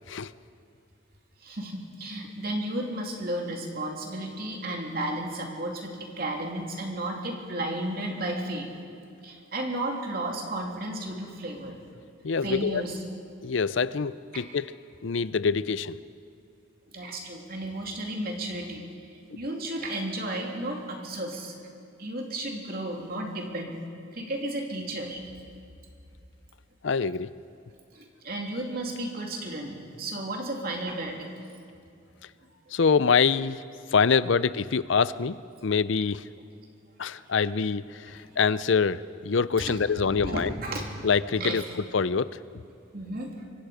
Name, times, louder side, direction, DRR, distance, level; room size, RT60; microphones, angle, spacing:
voice 1, 1.4-8.7 9.2-11.8 12.4-12.9 14.3-14.4 16.9-21.6 22.0-23.8 24.1-25.2 27.9-31.3 39.6-39.7 40.1-40.9 41.4-41.6 42.9-43.4, right 1 dB, 45° right, 1 dB, 2.9 m, -33 dB
voice 2, 12.2-12.8 13.4-14.7 15.0-16.0 19.3-19.4 26.8-27.3 32.7-33.6 33.9-36.3 37.0-40.5 41.0-42.4, left 5 dB, 65° left, 17 dB, 0.5 m, -25 dB
25.0 x 23.5 x 5.0 m, 2.5 s
head